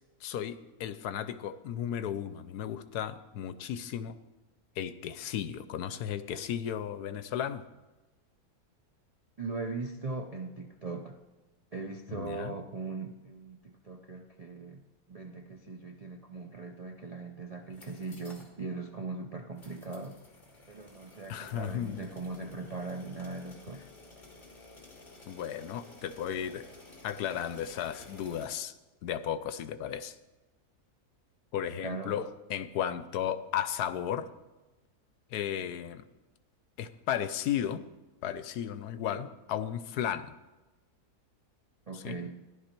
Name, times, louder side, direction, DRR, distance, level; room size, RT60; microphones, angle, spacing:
voice 1, 0.2-4.2 4.8-7.6 12.1-12.5 21.3-22.0 25.3-26.6 27.0-28.7 29.0-30.1 31.5-34.3 35.3-36.1 36.8-37.8 38.2-40.3 41.9-42.2, left 9 dB, 80° left, 12 dB, 1.2 m, -34 dB
voice 2, 9.4-11.2 11.7-14.8 15.1-20.1 20.7-23.9 31.8-32.2 41.9-42.4, right 3 dB, 50° right, 2 dB, 0.4 m, -39 dB
sound 1, 17.7-18.5 18.9-19.0 19.6-28.4, left 2 dB, 30° left, 2.1 m, -53 dB
14.5 x 11.0 x 4.4 m, 1.1 s
omnidirectional pair, 1.7 m